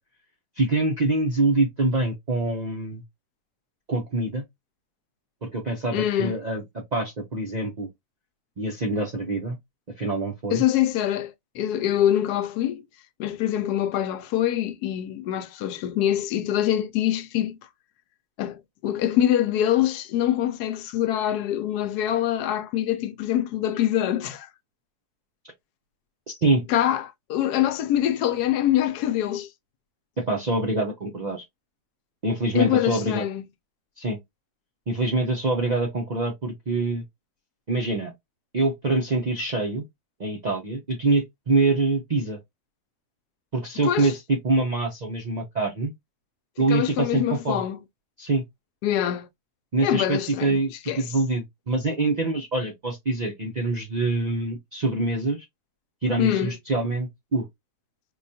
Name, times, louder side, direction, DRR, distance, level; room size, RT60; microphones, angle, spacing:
voice 1, 0.6-3.0 3.9-4.4 5.4-6.6 6.9-7.9 8.6-9.6 10.0-10.6 26.3-26.6 30.2-31.4 32.2-33.3 34.0-34.2 34.9-37.0 37.7-38.1 38.5-39.8 40.2-42.4 43.5-45.9 46.6-47.6 48.2-48.4 49.7-55.4 56.0-57.5, right 2 dB, 60° right, 0.4 m, -25 dB
voice 2, 5.9-6.4 10.5-12.8 13.2-17.6 18.4-24.5 26.7-29.5 32.5-33.4 43.8-44.1 46.7-47.8 48.8-49.3 49.8-50.6 50.9-51.0 56.2-56.5, left 11 dB, 90° left, 1.1 m, -24 dB
4.7 x 2.3 x 2.6 m
omnidirectional pair, 1.6 m